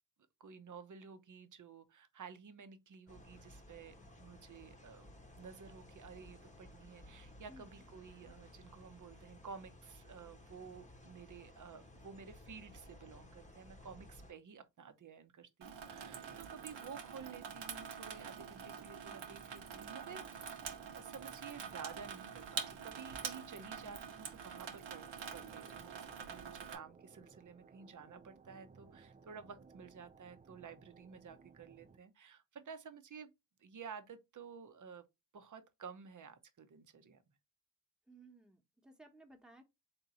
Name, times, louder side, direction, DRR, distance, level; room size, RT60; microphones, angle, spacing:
voice 1, 0.4-20.6 20.9-33.3 33.6-35.0 35.3-37.2, right 6 dB, 40° right, 0.9 m, -52 dB
sound 1, 3.1-14.3, left 1 dB, 15° left, 1.0 m, -57 dB
voice 2, 7.5-7.8 38.1-39.6, right 1 dB, ahead, 1.2 m, -59 dB
Water tap faucet / Sink (filling or washing), 15.6-26.8, right 7 dB, 65° right, 1.0 m, -46 dB
sound 2, 15.8-32.0, right 4 dB, 20° right, 0.5 m, -62 dB
3.6 x 2.7 x 4.2 m
supercardioid pair, 45°, 47 cm